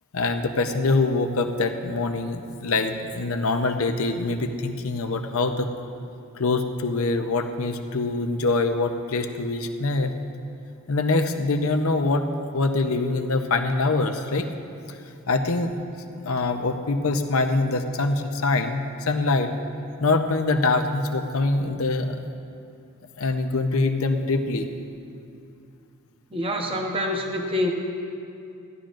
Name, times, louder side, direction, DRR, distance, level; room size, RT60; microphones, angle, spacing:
voice 1, 0.1-5.7 6.3-10.1 10.9-12.2 12.5-14.5 15.3-15.7 16.1-19.5 20.0-22.2 23.2-24.7, left 3 dB, 75° left, 6 dB, 0.7 m, -24 dB
voice 2, 26.3-27.7, left 1 dB, 25° right, 1 dB, 0.9 m, -26 dB
16.5 x 11.5 x 2.5 m, 2.5 s
head